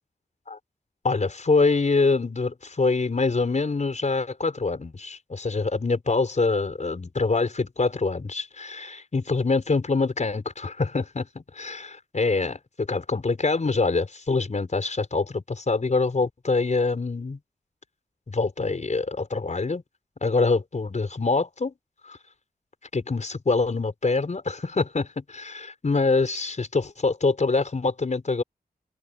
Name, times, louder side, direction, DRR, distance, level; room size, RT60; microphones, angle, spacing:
voice 1, 1.0-17.4 18.3-19.8 20.2-21.7 22.1-22.2 22.9-28.4, left 3 dB, 45° left, 5.0 m, -25 dB
open air
wide cardioid pair, 85°, 16 cm